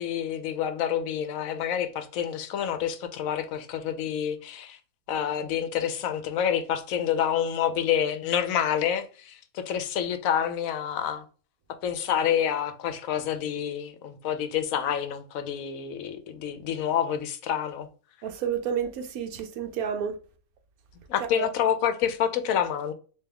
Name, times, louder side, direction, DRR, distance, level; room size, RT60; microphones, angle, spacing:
voice 1, 0.0-4.8 5.1-11.2 11.8-17.9 21.1-22.9, left 9 dB, 75° left, 1.0 m, -28 dB
voice 2, 18.2-20.2 21.4-21.5, right 8 dB, 90° right, 1.2 m, -30 dB
3.4 x 2.9 x 3.4 m
omnidirectional pair, 1.5 m